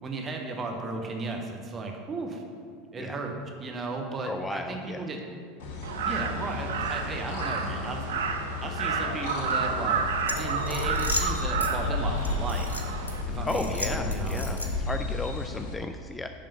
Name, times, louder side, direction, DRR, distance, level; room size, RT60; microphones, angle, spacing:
voice 1, 0.0-2.4 2.9-5.2 6.0-8.1 8.6-12.8 13.3-14.6, right 3 dB, 30° right, 3 dB, 1.2 m, -35 dB
voice 2, 4.2-5.1 13.4-16.3, left 2 dB, 15° left, 7 dB, 0.3 m, -34 dB
sound 1, 5.6-15.7, left 3 dB, 60° left, 1.0 m, -33 dB
Crow, 5.8-13.2, right 6 dB, 70° right, 0.5 m, -31 dB
sound 2, 10.2-11.7 12.2-13.1 13.5-14.9, left 1 dB, 85° left, 0.8 m, -35 dB
10.5 x 3.7 x 5.6 m, 2.2 s
figure-of-eight pair, 80°, 0 cm